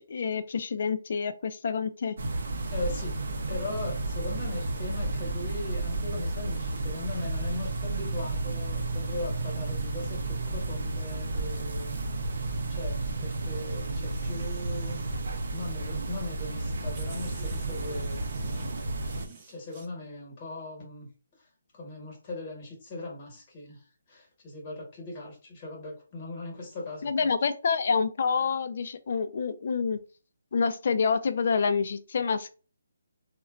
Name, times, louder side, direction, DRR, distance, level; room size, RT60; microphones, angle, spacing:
voice 1, 0.0-2.2 27.0-30.0 30.5-32.6, left 5 dB, 50° left, 11 dB, 0.4 m, -27 dB
sound 1, 2.2-19.3, right 2 dB, 65° right, 0.6 m, -32 dB
voice 2, 2.7-3.2 3.5-12.0 12.7-15.0 15.5-18.2 19.5-21.1 21.4-21.5 21.7-27.3, left 2 dB, 25° left, -1 dB, 1.1 m, -39 dB
sound 2, 13.6-15.9 16.5-16.6 16.9-19.9, right 4 dB, 25° right, 0.7 m, -51 dB
3.6 x 2.2 x 2.2 m, 0.36 s
hypercardioid pair, 165°, 0 cm